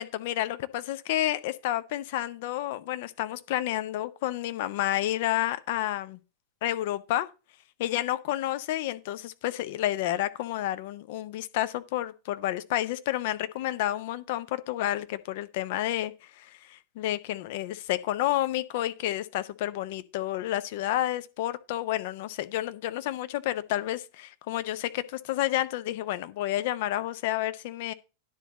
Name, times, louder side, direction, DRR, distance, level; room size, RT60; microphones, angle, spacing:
voice 1, 0.0-6.2 6.6-7.3 7.8-27.9, left 14 dB, 50° left, 0.6 m, -30 dB
10.0 x 4.0 x 6.9 m
figure-of-eight pair, 90°, 0 cm